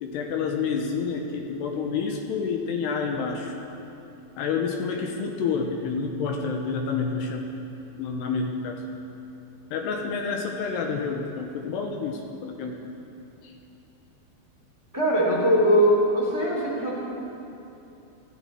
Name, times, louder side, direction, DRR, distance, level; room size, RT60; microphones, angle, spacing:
voice 1, 0.0-3.5 4.4-7.5 8.0-8.8 9.7-12.8 13.4-13.5, left 5 dB, 75° left, 2 dB, 2.7 m, -29 dB
voice 2, 14.9-17.0, equal, 5° right, -5 dB, 1.6 m, -21 dB
20.0 x 14.0 x 4.5 m, 2.8 s
omnidirectional pair, 5.6 m